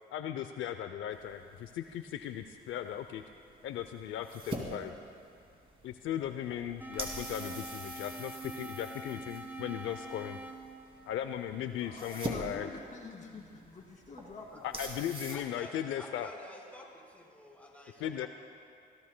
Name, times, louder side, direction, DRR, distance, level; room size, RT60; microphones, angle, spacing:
voice 1, 0.1-3.2 3.6-4.9 5.8-10.4 11.1-12.7 14.6-16.3 18.0-18.3, left 10 dB, 80° left, 8 dB, 0.6 m, -37 dB
sound 1, 1.1-15.4, right 2 dB, 25° right, 2.5 m, -45 dB
sound 2, 6.8-11.8, right 1 dB, 10° right, 0.9 m, -45 dB
voice 2, 11.8-14.8, left 3 dB, 40° left, -1 dB, 2.4 m, -48 dB
voice 3, 14.5-14.8 15.3-18.3, left 1 dB, 5° left, -3 dB, 4.2 m, -50 dB
26.5 x 16.0 x 2.2 m, 2.3 s
cardioid pair, 90°, 20 cm